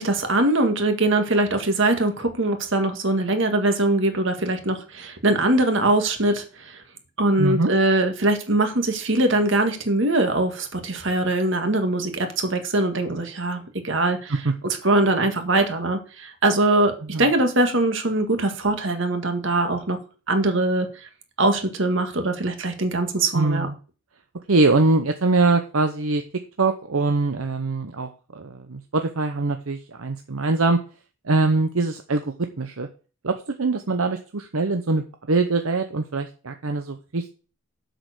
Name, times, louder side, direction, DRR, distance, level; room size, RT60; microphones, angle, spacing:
voice 1, 0.0-6.8 7.2-16.9 17.2-20.0 20.3-21.1 21.4-23.7, right 2 dB, 60° right, 6 dB, 1.9 m, -22 dB
voice 2, 7.4-7.7 14.4-14.5 17.1-17.2 23.3-23.8 24.5-26.2 26.6-30.8 31.2-32.9 33.2-37.3, right 3 dB, 75° right, 7 dB, 0.8 m, -23 dB
7.8 x 6.6 x 6.6 m, 0.36 s
head